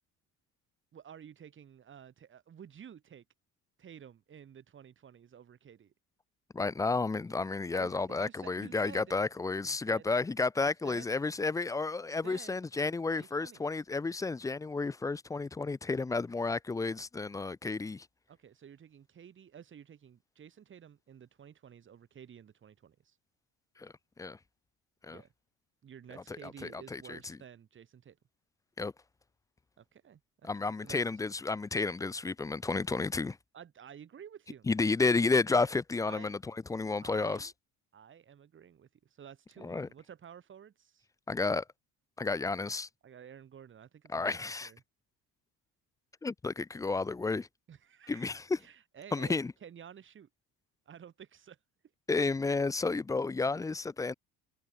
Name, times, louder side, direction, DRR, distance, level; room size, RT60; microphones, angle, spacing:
voice 1, 0.9-3.2 3.8-5.9 7.7-9.1 9.6-10.1 10.6-11.1 12.2-12.6 12.8-13.7 18.3-23.2 25.1-25.3 25.8-28.2 29.8-31.0 33.5-34.7 36.0-36.4 37.0-37.5 37.9-41.1 43.0-44.8 47.7-48.3 48.6-50.3 50.9-51.6, right 8 dB, 35° right, 5.2 m, -52 dB
voice 2, 6.5-18.1 23.8-24.4 25.1-25.2 26.3-27.4 28.8-28.9 30.4-33.4 34.7-37.5 39.6-39.9 41.3-41.6 42.2-42.9 44.1-44.7 46.2-47.5 48.1-48.6 49.1-49.5 52.1-54.1, left 3 dB, 10° left, 0.4 m, -32 dB
cardioid pair, 170°, 36 cm